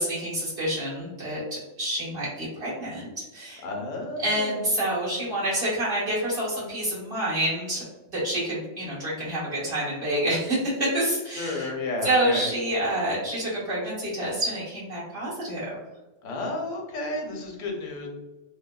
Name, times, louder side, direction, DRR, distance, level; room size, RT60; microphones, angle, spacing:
voice 1, 0.0-3.6 4.2-7.8 8.1-11.7 12.0-15.7, right 1 dB, 45° right, -8 dB, 1.6 m, -28 dB
voice 2, 3.6-4.9 11.3-12.5 16.2-18.1, left 2 dB, 80° left, 0 dB, 1.1 m, -32 dB
3.3 x 2.1 x 2.2 m, 1.1 s
omnidirectional pair, 1.4 m